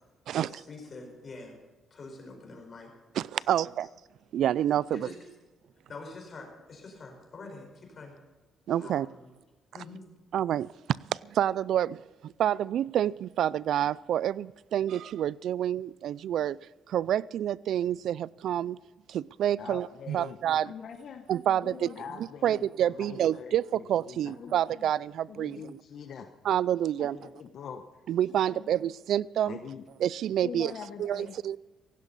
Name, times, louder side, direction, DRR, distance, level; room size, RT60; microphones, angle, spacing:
voice 1, 0.3-1.6 1.9-2.9 3.5-3.6 4.9-5.1 5.9-8.2 8.8-9.3 9.7-10.0, left 3 dB, 45° left, 4.8 m, -45 dB
voice 2, 3.1-3.9 4.3-5.1 8.7-9.1 10.3-10.7 11.3-16.6 16.9-18.8 19.1-20.7 21.3-21.9 22.2-25.8 26.4-27.2 28.1-29.6 30.0-30.7 31.0-31.6, right 11 dB, 75° right, 0.4 m, -28 dB
voice 3, 19.6-20.4 20.6-24.9 25.3-26.3 27.0-27.9 28.5-28.6 29.5-29.8 30.4-31.3, left 7 dB, 65° left, 1.2 m, -43 dB
17.0 x 16.0 x 4.2 m
cardioid pair, 90°, 0 cm